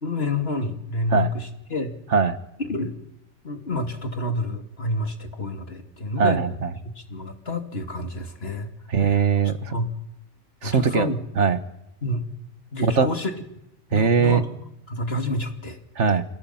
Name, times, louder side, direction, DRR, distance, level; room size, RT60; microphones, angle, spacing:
voice 1, 0.0-1.9 2.7-2.9 3.4-6.4 7.0-8.7 9.4-9.9 10.6-11.2 12.0-12.2 12.7-13.3 13.9-14.5 14.9-15.8, left 2 dB, 55° left, 6 dB, 2.8 m, -28 dB
voice 2, 6.2-6.7 8.9-9.8 10.6-11.6 12.8-13.1 13.9-14.4 15.9-16.2, right 6 dB, 70° right, 11 dB, 1.7 m, -21 dB
29.5 x 27.0 x 5.9 m, 0.84 s
omnidirectional pair, 1.3 m